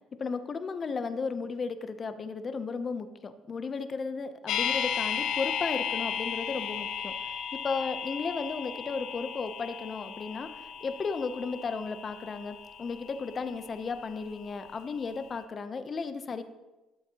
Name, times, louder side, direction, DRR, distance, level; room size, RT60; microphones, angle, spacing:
voice 1, 0.1-7.3 7.6-10.5 10.8-16.4, left 4 dB, 30° left, 10 dB, 0.6 m, -34 dB
sound 1, 4.5-14.5 14.8-14.9, left 7 dB, 70° left, 0.7 m, -35 dB
12.0 x 7.1 x 2.8 m, 1.1 s
cardioid pair, 140°, 0 cm